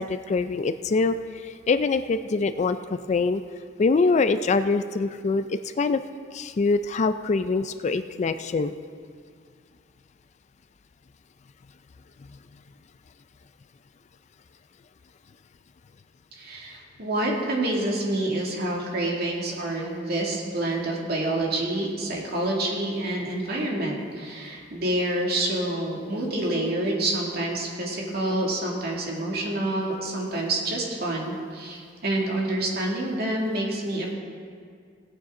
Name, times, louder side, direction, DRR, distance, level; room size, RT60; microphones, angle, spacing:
voice 1, 0.0-3.4 3.8-6.0 6.3-8.7, left 4 dB, 40° left, 11 dB, 0.4 m, -24 dB
voice 2, 16.3-34.1, right 1 dB, 55° right, -2 dB, 2.3 m, -27 dB
17.5 x 8.8 x 3.7 m, 2.2 s
head